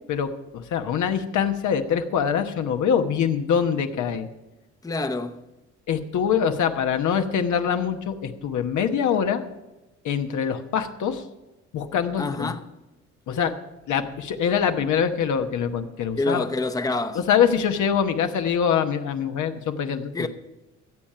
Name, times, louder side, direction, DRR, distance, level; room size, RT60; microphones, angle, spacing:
voice 1, 0.1-4.3 5.9-9.4 10.0-11.2 11.7-12.5 13.3-13.5 13.9-16.4 17.3-20.3, left 7 dB, 75° left, 1.1 m, -24 dB
voice 2, 4.8-5.4 12.2-12.7 16.2-17.2 20.1-20.3, left 2 dB, 10° left, 0.7 m, -27 dB
15.5 x 7.4 x 5.6 m
cardioid pair, 90°, 30 cm